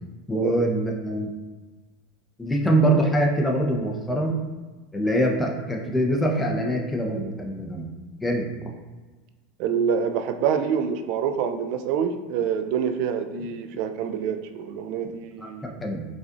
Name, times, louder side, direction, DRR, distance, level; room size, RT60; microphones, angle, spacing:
voice 1, 0.3-1.3 2.4-4.4 4.9-7.9 8.2-8.5 15.4-16.1, right 1 dB, 10° left, 0 dB, 0.7 m, -24 dB
voice 2, 9.6-15.6, right 7 dB, 60° right, 7 dB, 0.3 m, -26 dB
4.9 x 2.4 x 2.5 m, 1.3 s
hypercardioid pair, 95°, 0 cm